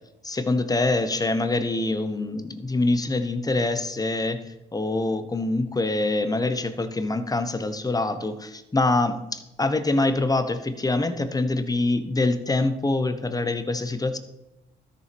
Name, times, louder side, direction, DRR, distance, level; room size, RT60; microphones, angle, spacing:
voice 1, 0.2-4.4 4.7-14.2, left 2 dB, 20° left, 10 dB, 1.1 m, -25 dB
13.0 x 7.0 x 5.3 m, 0.96 s
cardioid pair, 90°, 20 cm